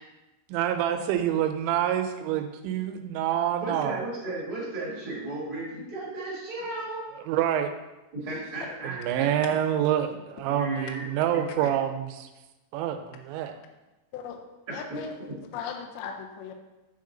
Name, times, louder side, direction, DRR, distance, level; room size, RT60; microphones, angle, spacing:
voice 1, 0.5-4.0 7.3-7.7 8.8-12.3 12.7-13.5, right 10 dB, 85° right, 7 dB, 2.8 m, -27 dB
voice 2, 3.6-7.1 8.1-9.3 10.4-11.0 14.9-15.0, right 2 dB, 65° right, -7 dB, 0.9 m, -35 dB
voice 3, 14.7-16.5, left 6 dB, 85° left, 3 dB, 2.2 m, -38 dB
9.2 x 3.6 x 3.8 m, 1.1 s
omnidirectional pair, 5.2 m